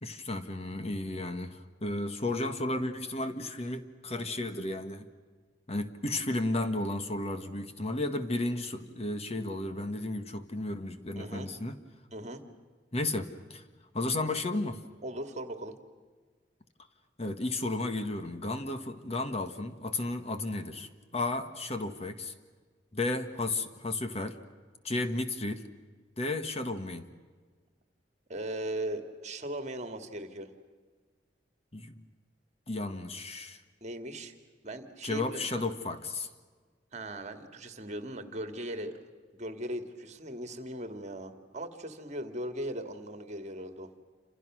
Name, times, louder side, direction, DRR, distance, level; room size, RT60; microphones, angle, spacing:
voice 1, 0.0-5.1 5.7-11.7 12.9-13.6 13.9-14.8 17.2-22.3 22.9-24.4 24.8-25.7 26.2-27.0 31.7-32.0 32.7-33.6 35.0-36.3, left 2 dB, 35° left, 8 dB, 1.6 m, -33 dB
voice 2, 11.2-11.5 12.1-12.4 15.0-15.8 28.3-30.5 33.8-34.3 34.6-35.6 36.9-39.0 39.3-43.9, right 1 dB, 40° right, 8 dB, 2.2 m, -38 dB
29.0 x 27.0 x 6.3 m, 1.5 s
head